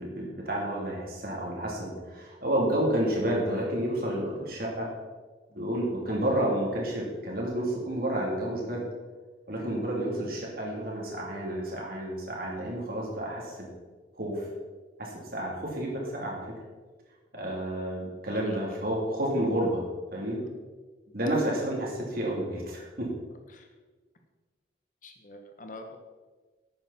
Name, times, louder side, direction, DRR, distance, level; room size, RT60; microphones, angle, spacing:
voice 1, 0.0-4.9 5.5-8.9 9.5-13.7 14.2-14.5 15.0-16.5 17.3-19.8 20.1-20.4 21.1-23.1, right 1 dB, 50° right, -3 dB, 3.1 m, -30 dB
voice 2, 25.0-26.0, left 1 dB, 40° left, 5 dB, 1.0 m, -46 dB
11.5 x 9.0 x 4.2 m, 1.3 s
head